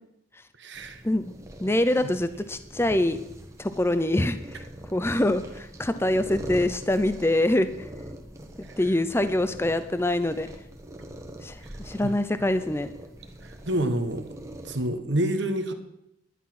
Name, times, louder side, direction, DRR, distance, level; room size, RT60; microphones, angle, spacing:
voice 1, 0.6-1.0 12.0-12.1 13.4-14.3 14.6-15.7, right 1 dB, 55° right, 7 dB, 1.2 m, -28 dB
sound 1, 0.7-14.9, right 1 dB, 15° right, 1.2 m, -43 dB
voice 2, 1.6-3.2 3.6-4.4 4.9-7.7 8.6-10.5 11.4-11.6 11.9-12.9, left 1 dB, 10° left, 11 dB, 0.5 m, -24 dB
11.0 x 10.5 x 6.0 m, 0.80 s
head